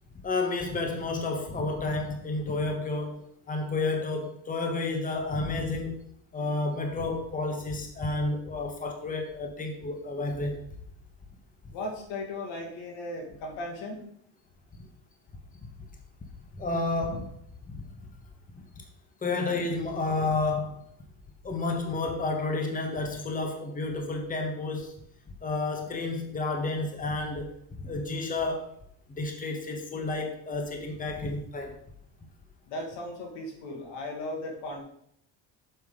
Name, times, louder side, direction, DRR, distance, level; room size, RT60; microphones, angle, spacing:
voice 1, 0.2-3.2 3.5-6.0 6.3-10.6 11.6-11.7 16.5-17.3 17.7-17.8 18.5-18.6 19.2-20.8 21.4-24.9 25.4-27.5 27.8-28.7 29.1-31.8, left 3 dB, 20° left, 3 dB, 1.3 m, -31 dB
voice 2, 11.7-14.0 32.7-34.8, left 1 dB, 80° left, 1 dB, 2.4 m, -36 dB
7.1 x 7.0 x 3.9 m, 0.69 s
cardioid pair, 115°, 44 cm